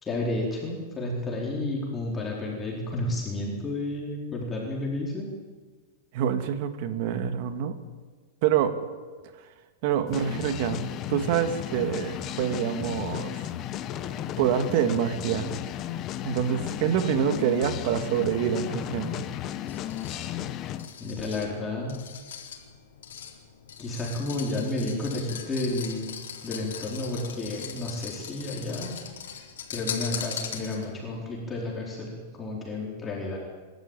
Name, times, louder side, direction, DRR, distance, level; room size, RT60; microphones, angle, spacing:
voice 1, 0.0-5.3 21.0-22.0 23.8-26.1 26.4-29.0 29.3-29.4 29.7-33.4, left 2 dB, 15° left, -2 dB, 4.3 m, -31 dB
voice 2, 6.1-7.8 8.4-8.7 9.8-13.4 14.4-15.5 16.2-19.2, right 9 dB, 50° right, 9 dB, 2.2 m, -26 dB
sound 1, 10.1-20.9, left 11 dB, 30° left, 1.1 m, -34 dB
sound 2, 19.7-31.1, left 8 dB, 90° left, 4.0 m, -40 dB
27.0 x 12.5 x 9.1 m, 1.4 s
supercardioid pair, 150°, 0 cm